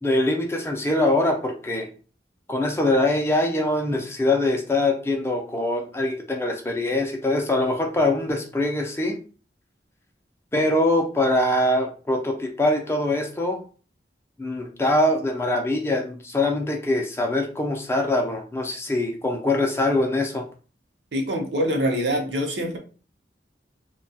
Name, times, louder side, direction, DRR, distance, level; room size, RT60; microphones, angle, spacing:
voice 1, 0.0-1.9 2.5-9.2 10.5-13.6 14.4-20.5, left 1 dB, 15° left, 2 dB, 0.4 m, -23 dB
voice 2, 21.1-22.8, equal, 75° right, 2 dB, 0.7 m, -24 dB
2.7 x 2.2 x 2.6 m, 0.37 s
head